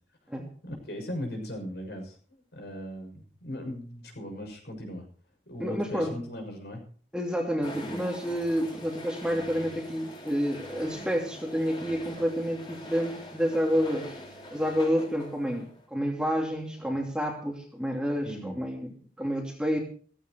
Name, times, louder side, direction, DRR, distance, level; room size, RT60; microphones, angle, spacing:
voice 1, 0.6-2.1 2.5-5.0 5.5-6.8 18.2-18.6, equal, 70° left, 3 dB, 6.5 m, -38 dB
voice 2, 5.6-6.1 7.1-14.1 14.5-19.8, equal, 5° right, 1 dB, 2.7 m, -29 dB
sound 1, 7.6-15.8, equal, 25° left, 4.0 m, -43 dB
16.0 x 15.0 x 4.6 m, 0.43 s
head